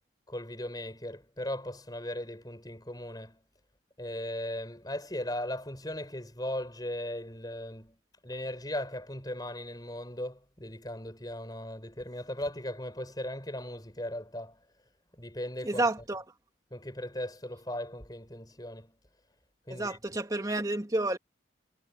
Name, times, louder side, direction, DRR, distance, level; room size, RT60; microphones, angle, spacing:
voice 1, 0.3-3.4 4.0-14.6 15.2-15.8 16.7-19.0 19.7-20.2, left 1 dB, 20° left, 5.5 m, -38 dB
voice 2, 15.6-16.2 19.7-21.2, right 2 dB, 20° right, 2.5 m, -30 dB
head